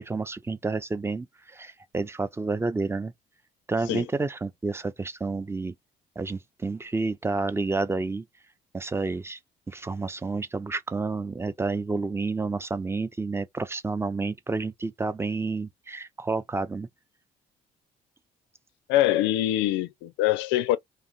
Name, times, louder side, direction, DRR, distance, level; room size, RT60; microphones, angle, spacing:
voice 1, 0.0-3.1 3.7-5.7 6.2-8.2 8.7-9.4 9.7-16.9, right 3 dB, 10° right, 0.4 m, -30 dB
voice 2, 18.9-20.8, left 14 dB, 60° left, 0.4 m, -24 dB
2.7 x 2.5 x 2.5 m
figure-of-eight pair, 45°, 21 cm